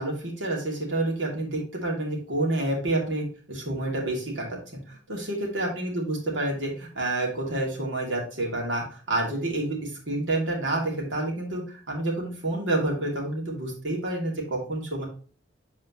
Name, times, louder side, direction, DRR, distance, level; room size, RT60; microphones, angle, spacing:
voice 1, 0.0-15.0, right 2 dB, 90° right, -1 dB, 2.6 m, -29 dB
8.2 x 4.3 x 3.0 m, 0.41 s
head